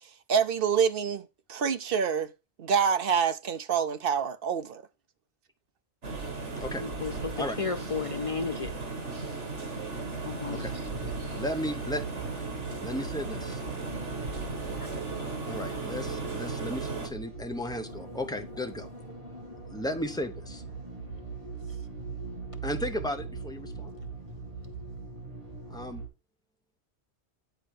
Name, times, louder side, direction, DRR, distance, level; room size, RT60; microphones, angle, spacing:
voice 1, 0.3-2.3 2.6-4.8, right 7 dB, 60° right, 0.8 m, -26 dB
sound 1, 6.0-17.1, right 3 dB, 85° right, 2.3 m, -36 dB
voice 2, 6.8-8.7 10.2-10.6, left 5 dB, 55° left, 0.3 m, -33 dB
sound 2, 9.9-26.1, right 4 dB, 30° right, 2.3 m, -41 dB
voice 3, 11.3-12.0 12.8-13.6 15.5-18.9 19.7-20.6 22.6-23.9 25.7-26.0, left 1 dB, 5° left, 0.8 m, -35 dB
9.3 x 4.3 x 5.2 m
omnidirectional pair, 1.2 m